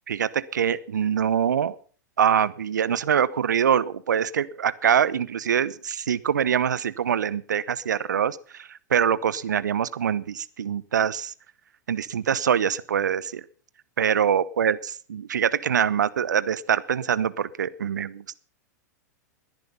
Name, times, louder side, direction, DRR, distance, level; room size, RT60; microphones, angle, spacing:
voice 1, 0.1-1.8 2.2-11.3 11.9-13.4 14.0-14.8 15.1-18.4, right 8 dB, 80° right, 19 dB, 0.9 m, -24 dB
20.0 x 10.5 x 5.6 m, 0.43 s
hypercardioid pair, 100°, 10 cm